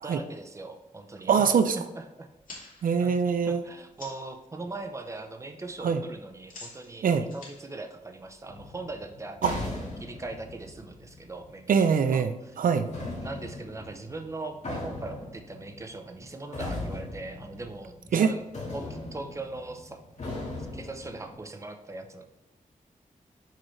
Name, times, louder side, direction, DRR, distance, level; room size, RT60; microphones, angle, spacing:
voice 1, 0.0-1.3 1.7-2.3 3.0-12.5 13.2-18.4 18.7-20.0 20.7-22.2, right 2 dB, 20° right, 6 dB, 0.6 m, -40 dB
voice 2, 1.3-1.8 2.8-3.6 5.8-6.0 7.0-7.3 9.4-9.6 11.7-12.9 18.1-18.3, right 6 dB, 80° right, 9 dB, 0.4 m, -23 dB
sound 1, 2.3-4.4 4.8-5.2 5.5-8.7, left 2 dB, 75° left, 2.1 m, -49 dB
sound 2, 8.5-11.9 12.9-18.2 18.5-21.4, left 2 dB, 55° left, 1.8 m, -39 dB
6.6 x 4.8 x 3.1 m, 0.97 s
wide cardioid pair, 105°, 14 cm